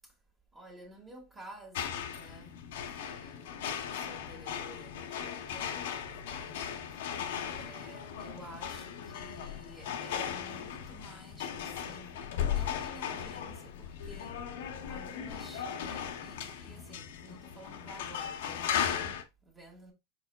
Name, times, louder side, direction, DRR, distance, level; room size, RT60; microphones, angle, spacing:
voice 1, 0.5-2.6 2.9-7.0 7.4-14.4 14.8-19.9, right 2 dB, 15° right, 1.6 m, -52 dB
sound 1, 1.8-19.2, left 8 dB, 75° left, 0.8 m, -37 dB
4.9 x 4.7 x 2.2 m
supercardioid pair, 130°, 0 cm